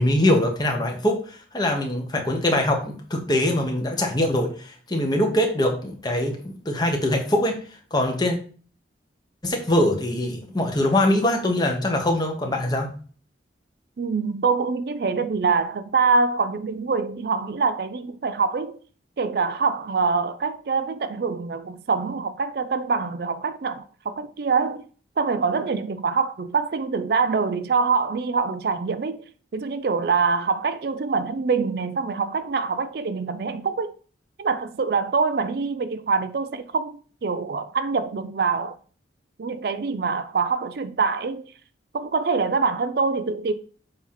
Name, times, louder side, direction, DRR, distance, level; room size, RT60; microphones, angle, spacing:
voice 1, 0.0-7.6 7.9-8.4 9.4-12.9, left 1 dB, 20° left, 1.1 m, -23 dB
voice 2, 14.0-18.8 19.2-24.8 25.2-29.2 29.5-33.9 34.4-38.8 39.4-41.4 41.9-43.5, right 4 dB, 55° right, 0.4 m, -24 dB
7.1 x 2.8 x 5.7 m
head